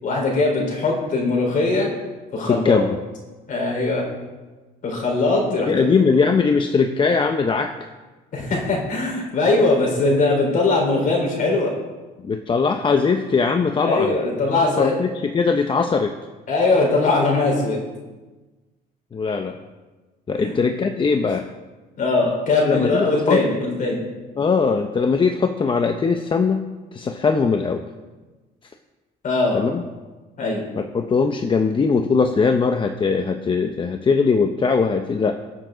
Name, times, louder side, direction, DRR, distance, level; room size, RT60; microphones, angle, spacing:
voice 1, 0.0-1.9 2.3-2.8 3.5-4.0 4.8-5.7 8.3-11.7 13.8-14.9 16.5-17.8 20.4-20.5 22.0-24.0 29.2-29.6 30.4-30.6, left 3 dB, 50° left, -1 dB, 4.6 m, -20 dB
voice 2, 2.4-3.0 5.5-7.9 12.2-14.2 14.5-16.1 19.1-19.6 20.3-21.5 22.6-23.4 24.4-26.7 26.9-27.8 29.5-29.8 30.8-35.4, left 5 dB, 30° left, 6 dB, 0.8 m, -20 dB
22.0 x 7.4 x 4.0 m, 1.2 s
cardioid pair, 110°, 17 cm